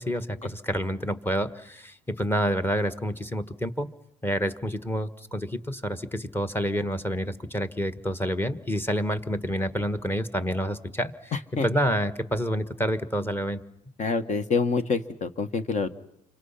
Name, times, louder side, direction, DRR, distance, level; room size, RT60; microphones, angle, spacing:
voice 1, 0.0-3.9 4.2-11.3 11.6-13.6, equal, 10° left, 11 dB, 1.4 m, -28 dB
voice 2, 11.3-11.7 14.0-15.9, left 4 dB, 45° left, 10 dB, 1.7 m, -26 dB
29.5 x 25.5 x 5.8 m, 0.77 s
cardioid pair, 110°, 17 cm